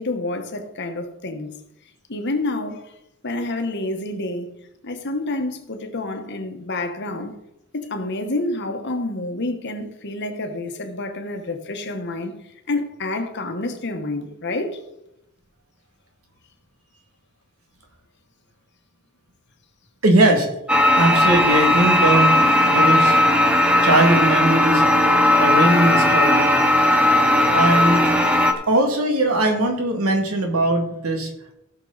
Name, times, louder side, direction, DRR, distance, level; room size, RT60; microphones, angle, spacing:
voice 1, 0.0-1.6 2.1-2.9 3.2-4.5 4.8-7.4 7.7-12.4 12.7-14.8, left 2 dB, 55° left, 1.3 m, -28 dB
voice 2, 20.0-20.5 20.9-23.2 23.8-24.9 25.4-26.5 27.5-28.0 28.7-31.3, right 1 dB, 80° right, 2.3 m, -20 dB
sound 1, 20.7-28.5, left 1 dB, 5° right, 0.9 m, -17 dB
16.5 x 6.4 x 4.0 m
head